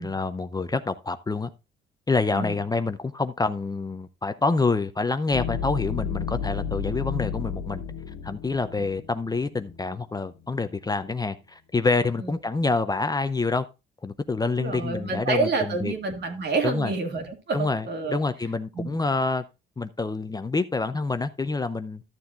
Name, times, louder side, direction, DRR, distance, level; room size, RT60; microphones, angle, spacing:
voice 1, 0.0-1.5 2.1-7.8 8.2-13.7 14.0-15.9 16.6-16.9 17.5-19.4 19.8-22.0, left 3 dB, 20° left, 0.6 m, -27 dB
sound 1, 5.3-9.9, left 7 dB, 80° left, 0.8 m, -32 dB
voice 2, 14.5-18.2 18.8-19.0, right 3 dB, 60° right, 2.2 m, -28 dB
13.5 x 7.0 x 2.5 m
cardioid pair, 90°, 20 cm